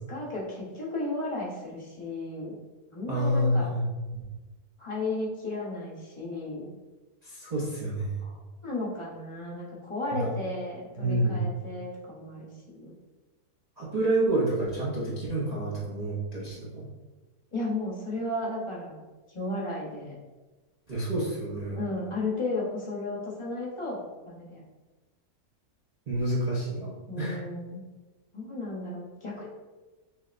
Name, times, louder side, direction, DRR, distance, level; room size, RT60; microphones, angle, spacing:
voice 1, 0.1-2.5 2.9-3.7 4.8-6.7 8.2-12.9 17.5-19.0 19.3-20.2 21.7-24.6 27.1-27.8 28.3-29.5, left 2 dB, 25° left, -6 dB, 0.7 m, -34 dB
voice 2, 3.1-4.2 7.2-8.2 10.1-10.2 11.0-11.4 13.8-16.9 20.9-21.8 26.1-27.4, right 1 dB, 60° right, -7 dB, 0.4 m, -28 dB
6.2 x 2.1 x 2.4 m, 1.2 s
omnidirectional pair, 1.6 m